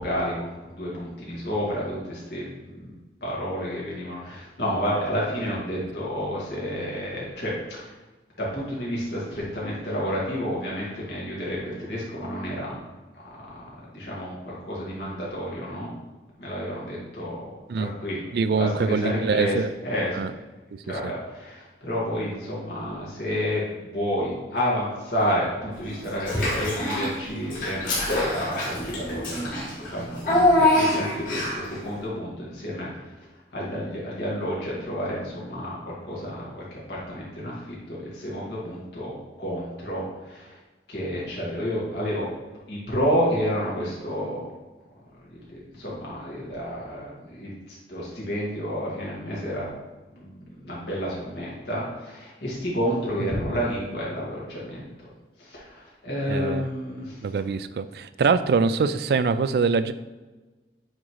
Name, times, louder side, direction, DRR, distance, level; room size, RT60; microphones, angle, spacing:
voice 1, 0.0-2.9 3.2-7.9 8.4-12.8 13.3-13.7 13.9-15.9 16.4-18.2 18.5-19.5 19.8-20.3 20.9-32.9 33.5-35.8 36.0-40.6 40.9-42.3 42.7-44.4 45.5-49.7 50.1-54.9 55.4-57.2, equal, 75° left, -6 dB, 1.9 m, -30 dB
voice 2, 18.3-19.7 20.2-20.3 56.3-56.7 57.2-59.9, right 5 dB, 60° right, 13 dB, 0.3 m, -23 dB
Child speech kid speaking / Bathtub (filling or washing), 26.2-27.1 27.5-31.7, left 1 dB, 50° left, 2.0 m, -24 dB
8.7 x 3.7 x 3.1 m, 1.2 s
head